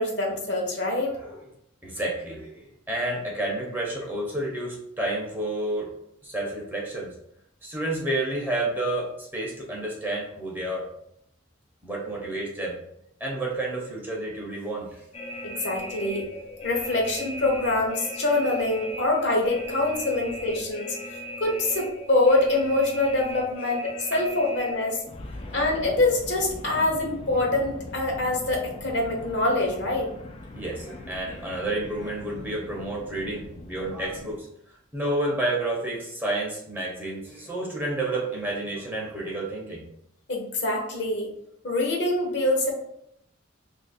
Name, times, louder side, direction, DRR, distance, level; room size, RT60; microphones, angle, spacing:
voice 1, 0.0-1.2 15.4-16.3 16.6-21.0 21.4-25.0 25.5-30.1 40.3-41.3 41.6-42.7, left 2 dB, 60° left, 0 dB, 0.8 m, -25 dB
voice 2, 1.8-5.9 6.2-7.1 7.6-10.9 11.8-12.7 13.2-15.0 30.5-34.5 34.9-39.8, right 1 dB, 10° right, -3 dB, 0.7 m, -30 dB
sound 1, 15.1-34.3, left 1 dB, 30° left, 0.3 m, -39 dB
2.8 x 2.5 x 4.1 m, 0.75 s
head